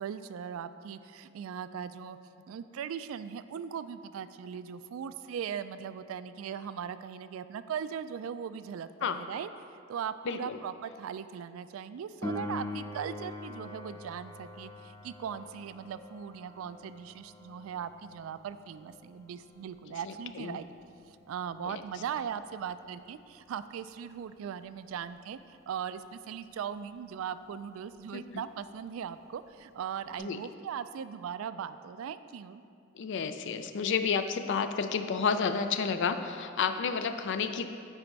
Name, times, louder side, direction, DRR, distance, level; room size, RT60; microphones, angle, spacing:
voice 1, 0.0-2.2 2.5-9.5 9.9-20.7 21.1-32.6, right 8 dB, 80° right, 14 dB, 0.3 m, -39 dB
voice 2, 10.3-10.6 20.1-20.6 21.6-21.8 28.1-28.4 30.2-30.4 32.9-37.7, left 6 dB, 60° left, 9 dB, 0.4 m, -31 dB
Piano, 12.2-22.6 30.2-30.3, left 1 dB, 15° left, 0.6 m, -44 dB
8.9 x 4.3 x 4.6 m, 2.5 s
head